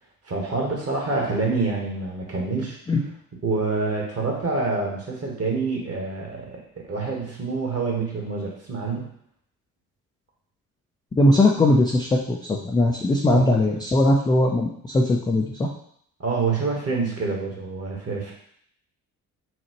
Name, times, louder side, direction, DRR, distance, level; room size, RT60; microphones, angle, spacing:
voice 1, 0.2-2.8 3.4-9.1 13.3-13.6 16.2-18.3, right 3 dB, 30° right, -1 dB, 1.5 m, -27 dB
voice 2, 11.2-15.7, left 1 dB, 10° left, -1 dB, 0.4 m, -20 dB
5.9 x 2.4 x 3.0 m, 0.67 s
figure-of-eight pair, 45°, 46 cm